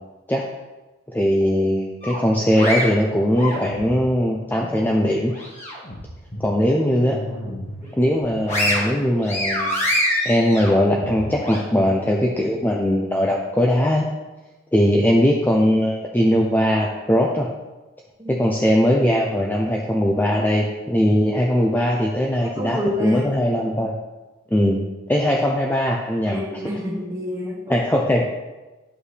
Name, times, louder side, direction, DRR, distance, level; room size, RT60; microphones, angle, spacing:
voice 1, 1.1-5.3 6.4-7.2 8.0-9.8 10.2-14.1 14.7-17.5 18.3-23.9 24.5-24.8 25.1-26.4 27.7-28.2, equal, 10° left, -1 dB, 0.5 m, -20 dB
sound 1, 2.0-4.1 4.5-6.0 6.3-6.5 6.9-7.7 8.1-11.6, equal, 35° left, 1.8 m, -26 dB
voice 2, 22.6-23.2 26.3-27.7, left 1 dB, 15° right, -3 dB, 1.5 m, -28 dB
9.8 x 5.2 x 3.3 m, 1.1 s
head